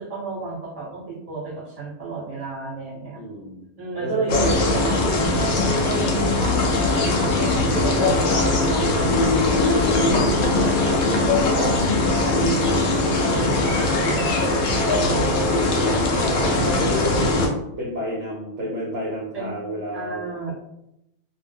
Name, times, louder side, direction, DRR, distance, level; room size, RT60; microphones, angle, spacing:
voice 1, 0.0-3.2 3.8-5.3 5.8-6.6 6.9-9.8 10.0-11.8 12.2-14.2 15.0-15.6 16.4-16.9 19.3-19.5 19.9-20.5, right 4 dB, 25° right, -6 dB, 1.1 m, -31 dB
voice 2, 3.1-3.7 4.0-5.2 15.3-16.4 16.8-17.4 17.8-20.5, left 1 dB, 60° right, -3 dB, 0.8 m, -30 dB
sound 1, 4.3-17.5, left 2 dB, 65° left, 0.7 m, -20 dB
2.5 x 2.1 x 3.3 m, 0.85 s
omnidirectional pair, 1.5 m